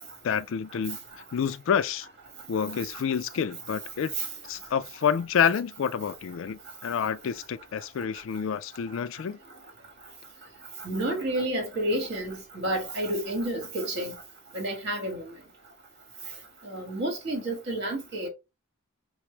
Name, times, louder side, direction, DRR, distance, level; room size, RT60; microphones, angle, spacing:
voice 1, 0.2-1.0 1.3-2.1 2.5-4.1 4.4-9.4, left 7 dB, 60° left, 0.3 m, -28 dB
voice 2, 10.8-14.1 14.5-15.3 16.6-18.3, right 1 dB, 50° right, 1.6 m, -30 dB
5.9 x 2.0 x 3.2 m
head